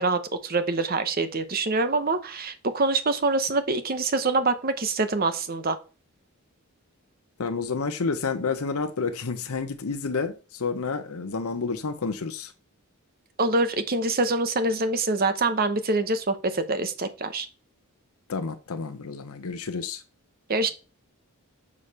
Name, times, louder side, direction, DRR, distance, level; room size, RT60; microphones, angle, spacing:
voice 1, 0.0-5.8 13.4-17.5 20.5-20.7, right 3 dB, 40° right, 0.9 m, -25 dB
voice 2, 7.4-12.5 18.3-20.0, left 4 dB, 75° left, 0.8 m, -30 dB
6.6 x 4.9 x 5.5 m
head